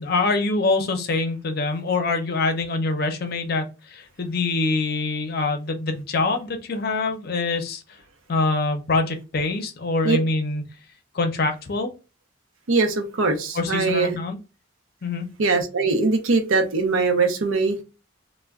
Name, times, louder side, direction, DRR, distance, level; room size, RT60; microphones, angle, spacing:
voice 1, 0.0-7.8 8.3-10.6 11.1-11.9 13.5-14.4 15.0-15.3, left 3 dB, 50° left, 6 dB, 0.5 m, -24 dB
voice 2, 12.7-14.2 15.4-17.8, right 3 dB, 90° right, 6 dB, 0.6 m, -21 dB
2.2 x 2.1 x 3.5 m, 0.30 s
head